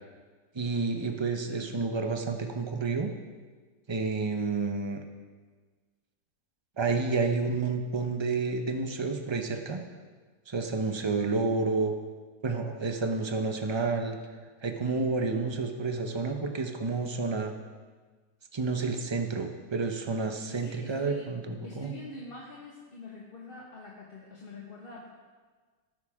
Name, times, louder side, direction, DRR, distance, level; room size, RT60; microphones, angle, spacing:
voice 1, 0.5-3.1 3.9-5.0 6.8-9.8 10.5-11.9 12.4-14.2 14.6-17.5 18.5-21.9, right 4 dB, 40° right, 4 dB, 0.3 m, -30 dB
voice 2, 14.8-15.1 20.5-21.3 21.6-25.1, left 2 dB, 30° left, -4 dB, 1.5 m, -45 dB
18.0 x 9.7 x 3.6 m, 1.4 s
omnidirectional pair, 2.0 m